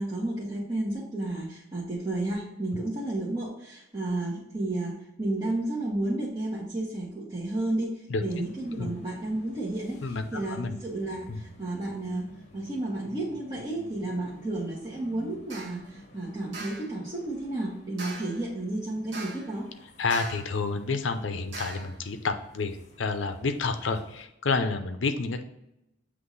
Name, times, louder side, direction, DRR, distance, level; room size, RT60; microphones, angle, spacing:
voice 1, 0.0-19.7, right 2 dB, 25° right, -8 dB, 1.1 m, -32 dB
sound 1, 8.3-24.3, left 1 dB, 35° left, 0.9 m, -53 dB
voice 2, 10.0-10.8 11.3-11.4 20.0-25.4, left 4 dB, 70° left, 8 dB, 0.6 m, -29 dB
sound 2, 15.5-15.8 16.5-16.9 18.0-18.4 19.1-19.6 20.1-20.6 21.5-22.0, right 2 dB, 70° right, 1.4 m, -40 dB
7.9 x 3.1 x 3.9 m, 0.85 s
head